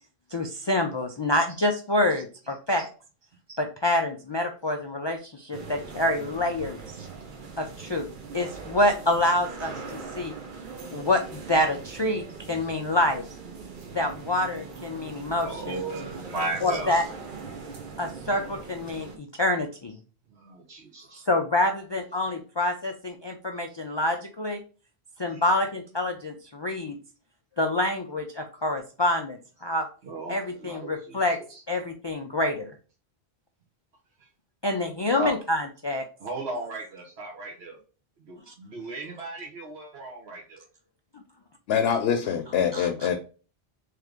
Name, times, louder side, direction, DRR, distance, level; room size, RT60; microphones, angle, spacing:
voice 1, 0.3-2.9 3.5-7.1 7.6-8.1 8.3-10.3 10.9-13.2 13.9-15.8 16.6-17.0 18.0-20.0 21.3-24.6 25.2-27.0 27.6-29.9 30.3-31.4 31.7-32.7 34.6-36.0 38.5-38.6 42.7-42.9, left 1 dB, 45° left, 3 dB, 0.3 m, -27 dB
sound 1, 5.5-19.2, right 5 dB, 55° right, 0.9 m, -41 dB
voice 2, 15.4-17.0 20.3-21.2 25.3-25.4 30.0-31.6 34.2-34.3 35.2-35.3 36.2-37.8 38.2-40.6, right 2 dB, 80° right, -3 dB, 1.3 m, -36 dB
voice 3, 41.7-43.1, left 8 dB, 75° left, 5 dB, 0.8 m, -24 dB
3.6 x 3.3 x 3.4 m, 0.37 s
omnidirectional pair, 1.1 m